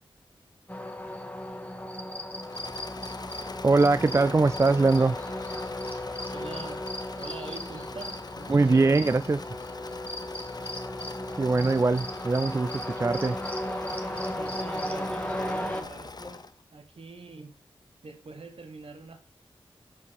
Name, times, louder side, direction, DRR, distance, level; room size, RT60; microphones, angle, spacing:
sound 1, 0.7-15.8, left 1 dB, 15° left, 1.2 m, -35 dB
Engine / Mechanisms, 2.3-16.6, left 3 dB, 40° left, 0.6 m, -42 dB
voice 1, 3.6-5.2 8.5-9.4 11.4-13.4, right 3 dB, 30° right, 0.3 m, -22 dB
voice 2, 6.3-6.9 7.2-9.2 11.5-11.8 14.3-16.5 16.7-17.5 18.0-19.2, right 3 dB, 70° right, 1.3 m, -44 dB
5.8 x 4.6 x 6.4 m
cardioid pair, 40°, 10 cm